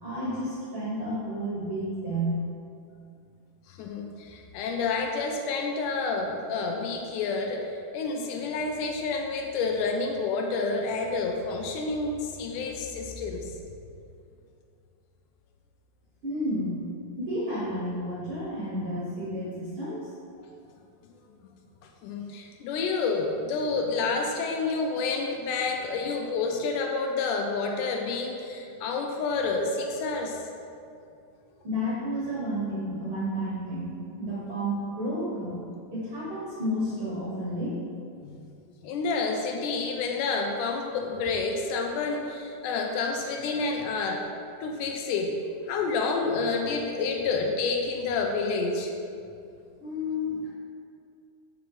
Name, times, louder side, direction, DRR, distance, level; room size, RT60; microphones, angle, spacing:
voice 1, 0.0-2.4 16.2-16.8 17.2-20.1 31.6-35.6 35.9-37.8 49.8-50.5, equal, 60° right, -7 dB, 1.4 m, -31 dB
voice 2, 3.7-13.5 22.0-30.4 38.2-38.4 38.8-44.3 44.6-45.4 45.7-48.9, left 4 dB, 85° left, 2 dB, 2.1 m, -29 dB
5.0 x 4.6 x 4.9 m, 2.5 s
omnidirectional pair, 3.6 m